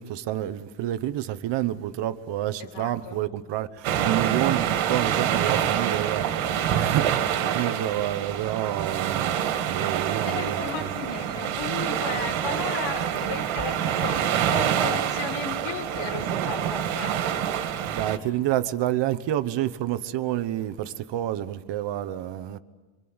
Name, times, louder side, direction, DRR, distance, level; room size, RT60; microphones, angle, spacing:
voice 1, 0.0-9.4 9.7-10.7 17.9-22.6, right 13 dB, 60° right, 1.2 m, -29 dB
voice 2, 2.6-3.2 10.2-17.2, left 5 dB, 70° left, 5.2 m, -35 dB
sound 1, 3.8-18.2, right 9 dB, 75° right, 2.4 m, -26 dB
28.0 x 25.0 x 8.0 m
cardioid pair, 170°, 48 cm